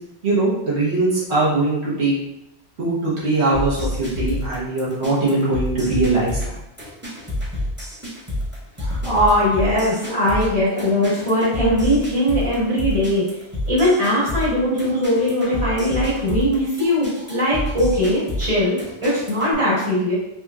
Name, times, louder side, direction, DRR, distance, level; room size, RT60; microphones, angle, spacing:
voice 1, 0.2-2.1 2.8-6.5, right 2 dB, 85° right, -8 dB, 1.3 m, -21 dB
sound 1, 3.5-19.5, left 1 dB, 10° right, 0.7 m, -28 dB
voice 2, 8.8-13.2 13.7-20.1, equal, 30° right, -8 dB, 1.5 m, -20 dB
3.5 x 2.9 x 2.4 m, 0.87 s
omnidirectional pair, 1.1 m